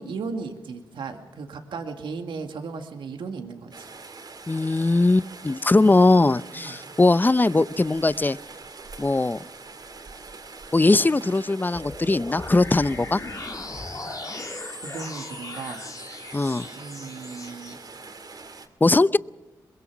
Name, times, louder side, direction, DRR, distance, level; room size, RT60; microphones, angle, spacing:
voice 1, 0.0-3.9 5.7-5.9 6.5-6.8 14.8-15.9 16.8-17.8, right 4 dB, 80° right, 5 dB, 2.1 m, -36 dB
Rain, 3.7-18.7, right 4 dB, 55° right, 2.8 m, -44 dB
voice 2, 4.5-8.4 9.0-9.4 10.7-13.2 16.3-16.7 18.8-19.2, left 2 dB, 25° left, 18 dB, 0.6 m, -20 dB
sound 1, 11.7-17.7, left 2 dB, 45° left, 3.8 m, -38 dB
22.5 x 22.0 x 6.2 m, 1.1 s
cardioid pair, 50°, 8 cm